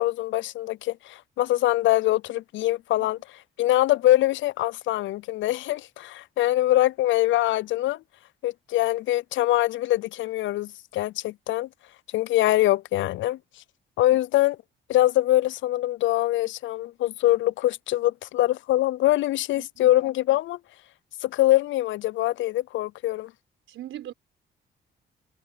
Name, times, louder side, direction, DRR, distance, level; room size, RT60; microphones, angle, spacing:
voice 1, 0.0-3.2 3.6-8.0 8.4-11.7 12.1-13.4 14.0-14.6 14.9-20.6 21.2-23.3, left 15 dB, 75° left, 0.5 m, -23 dB
voice 2, 19.5-19.9 23.7-24.1, right 12 dB, 75° right, 4.2 m, -40 dB
cardioid pair, 90°, 20 cm